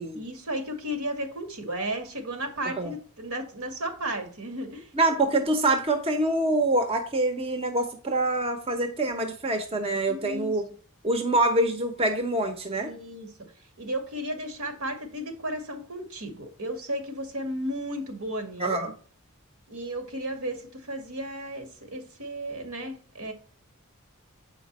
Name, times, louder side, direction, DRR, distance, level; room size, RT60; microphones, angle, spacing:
voice 1, 0.0-4.9 10.1-10.6 12.8-13.3 13.8-18.7 19.7-23.3, right 1 dB, 80° right, 5 dB, 2.1 m, -34 dB
voice 2, 4.9-10.6 11.0-12.9 18.6-18.9, right 2 dB, 25° right, 6 dB, 0.9 m, -25 dB
8.4 x 5.1 x 4.2 m, 0.41 s
head